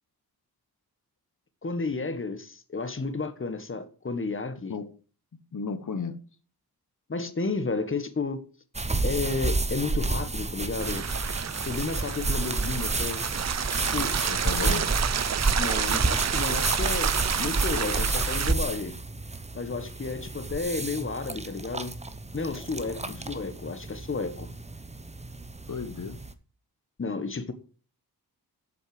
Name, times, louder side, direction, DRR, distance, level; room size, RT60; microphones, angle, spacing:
voice 1, 1.6-4.8 7.1-8.4 9.0-11.0 11.7-13.2 13.9-14.2 14.6-14.9 15.6-17.1 17.4-18.9 19.5-21.9 22.3-24.5 27.0-27.5, left 4 dB, 30° left, 1.4 m, -32 dB
voice 2, 5.5-6.2 14.3-14.8 23.0-23.2 25.7-26.2, left 5 dB, 50° left, 1.4 m, -34 dB
sound 1, 8.7-26.3, right 3 dB, 15° right, 0.8 m, -30 dB
sound 2, 10.8-18.5, right 8 dB, 45° right, 0.5 m, -30 dB
8.1 x 6.4 x 7.8 m
cardioid pair, 80°, 38 cm